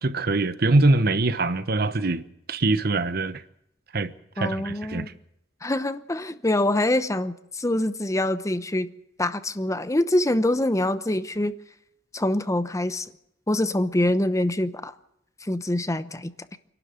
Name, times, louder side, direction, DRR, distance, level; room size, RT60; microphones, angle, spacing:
voice 1, 0.0-2.2 2.5-3.4 3.9-4.1 4.4-5.1, right 2 dB, 55° right, 1.1 m, -23 dB
voice 2, 4.4-5.1 5.6-8.9 9.2-11.5 12.1-13.1 13.5-14.9 15.4-16.6, left 1 dB, 15° left, 0.9 m, -25 dB
26.0 x 12.0 x 9.5 m
head